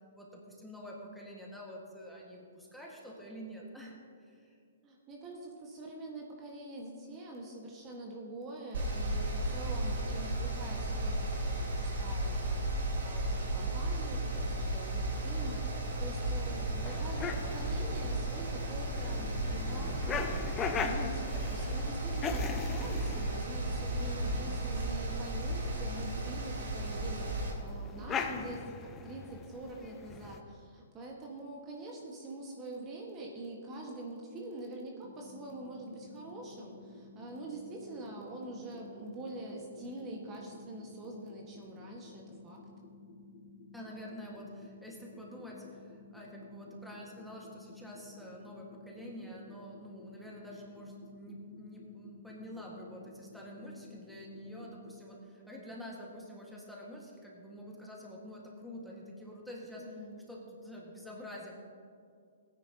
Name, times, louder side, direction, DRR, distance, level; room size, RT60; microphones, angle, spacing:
voice 1, 0.1-4.6 43.7-61.5, equal, ahead, -3 dB, 1.7 m, -47 dB
voice 2, 4.8-42.6 59.8-60.2, right 1 dB, 25° right, -1 dB, 1.5 m, -45 dB
Mechanical fan, 8.7-27.5, right 1 dB, 65° right, 3.2 m, -34 dB
sound 1, 14.3-30.4, left 5 dB, 20° left, 0.7 m, -41 dB
sound 2, 35.0-55.0, left 3 dB, 50° left, 2.5 m, -54 dB
17.0 x 9.8 x 2.9 m, 2.3 s
hypercardioid pair, 125°, 0 cm